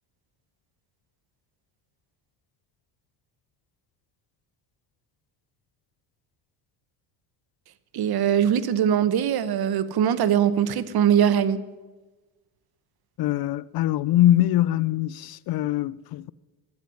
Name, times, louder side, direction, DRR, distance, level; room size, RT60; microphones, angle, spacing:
voice 1, 7.9-11.6, right 9 dB, 55° right, 1.1 m, -21 dB
voice 2, 13.2-16.3, left 13 dB, 55° left, 0.5 m, -23 dB
11.5 x 9.5 x 9.8 m
supercardioid pair, 90°, 45 cm